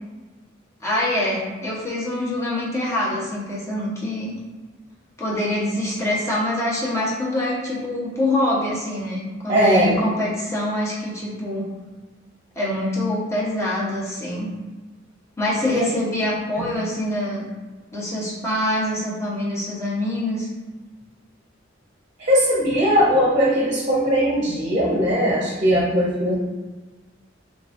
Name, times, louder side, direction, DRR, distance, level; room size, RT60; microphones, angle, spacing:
voice 1, 0.8-4.4 5.2-11.7 12.5-14.5 15.4-17.5 17.9-20.5, left 1 dB, 15° left, -6 dB, 1.0 m, -25 dB
voice 2, 9.5-10.0 15.6-15.8 16.6-16.7 22.2-26.3, equal, 40° right, -5 dB, 0.7 m, -19 dB
3.8 x 3.6 x 2.6 m, 1.3 s
head